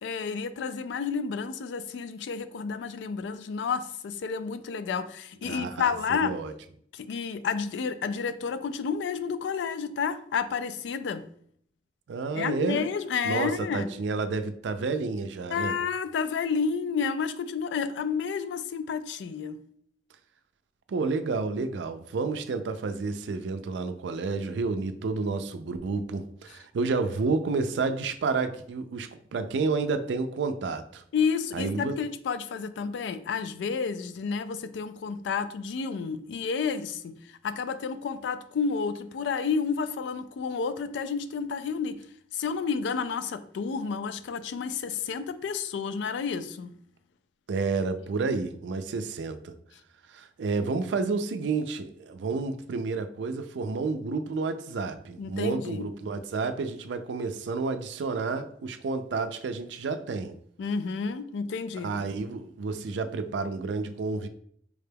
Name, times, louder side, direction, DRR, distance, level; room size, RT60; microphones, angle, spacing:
voice 1, 0.0-6.3 6.9-11.2 12.4-13.9 15.5-19.6 31.1-42.0 42.3-46.7 55.2-55.9 60.6-61.9, left 5 dB, 85° left, 13 dB, 0.3 m, -30 dB
voice 2, 5.4-5.9 6.2-6.5 12.1-12.8 13.2-15.8 20.9-31.0 31.5-32.0 47.5-49.5 50.1-60.3 61.8-64.3, right 4 dB, 85° right, 9 dB, 0.4 m, -30 dB
4.8 x 2.2 x 3.3 m, 0.63 s
head